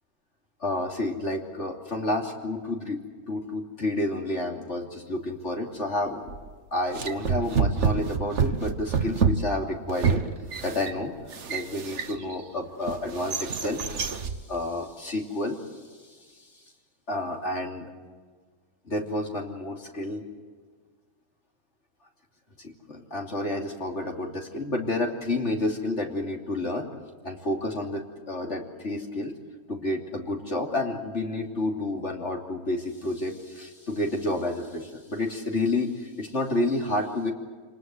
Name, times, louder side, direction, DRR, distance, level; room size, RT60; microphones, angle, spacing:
voice 1, 0.6-6.3 6.7-10.2 10.6-11.1 11.5-16.5 17.1-17.9 18.8-20.2 22.6-26.9 27.2-29.3 29.7-37.3, left 2 dB, 50° left, 1 dB, 3.3 m, -30 dB
sound 1, 6.3-6.5 6.9-12.4 12.9-14.4, right 5 dB, 55° right, 1.5 m, -28 dB
27.5 x 19.5 x 7.9 m, 1.5 s
omnidirectional pair, 1.5 m